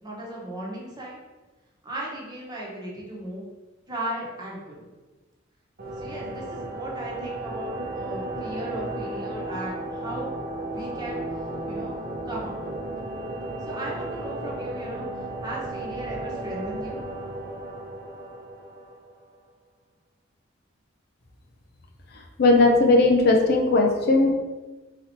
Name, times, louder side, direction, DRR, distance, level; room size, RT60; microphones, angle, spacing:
voice 1, 0.0-1.2 1.8-3.4 3.9-4.9 6.0-10.4 10.7-11.2 11.7-11.9 12.2-12.9 13.6-17.0, right 1 dB, 20° right, -5 dB, 1.2 m, -36 dB
sound 1, 5.8-19.4, right 1 dB, 50° right, 0.8 m, -34 dB
voice 2, 22.4-24.3, left 2 dB, 55° left, 1 dB, 0.6 m, -18 dB
4.1 x 2.9 x 4.3 m, 1.2 s
head